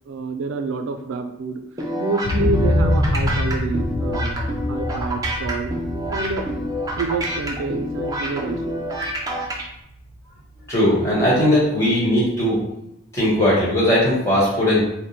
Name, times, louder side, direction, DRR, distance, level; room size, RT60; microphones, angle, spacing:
voice 1, 0.0-1.6 2.0-4.4 4.7-5.7 6.1-6.4 7.0-8.8, right 3 dB, 85° right, 7 dB, 0.4 m, -27 dB
sound 1, 1.8-9.6, right 1 dB, 20° right, 0.5 m, -28 dB
sound 2, 2.2-10.1 10.5-10.6, left 1 dB, 40° left, 0.3 m, -25 dB
voice 2, 10.7-12.6 13.1-14.8, left 1 dB, 15° left, -7 dB, 1.3 m, -18 dB
3.5 x 2.1 x 4.2 m, 0.82 s
head